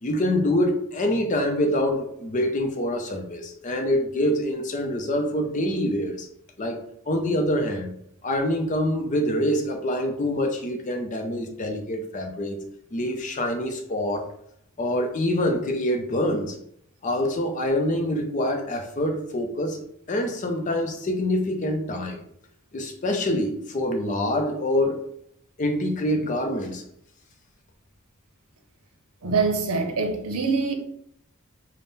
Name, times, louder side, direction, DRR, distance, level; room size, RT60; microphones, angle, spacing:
voice 1, 0.0-6.3 6.6-7.9 8.2-12.6 12.9-14.3 14.8-16.6 17.0-19.8 20.1-22.2 22.7-25.0 25.6-26.8, left 1 dB, 35° left, 0.5 m, -25 dB
voice 2, 29.2-30.7, right 4 dB, 90° right, 0.6 m, -24 dB
3.5 x 2.1 x 3.9 m
head